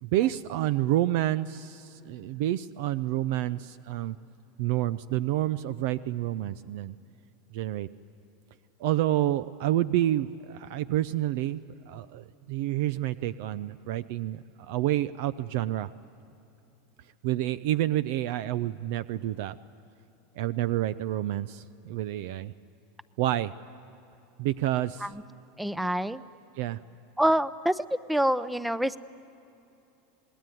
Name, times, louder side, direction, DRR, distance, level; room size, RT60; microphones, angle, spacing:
voice 1, 0.0-4.2 4.6-7.0 7.5-7.9 8.8-11.6 11.9-15.9 17.2-19.6 20.4-22.5 23.2-23.5 24.4-25.1 26.6-26.8, right 14 dB, 65° right, 15 dB, 0.6 m, -28 dB
voice 2, 25.6-26.2 27.2-29.0, right 1 dB, 5° right, 16 dB, 0.6 m, -26 dB
27.0 x 20.0 x 9.3 m, 2.9 s
supercardioid pair, 130°, 0 cm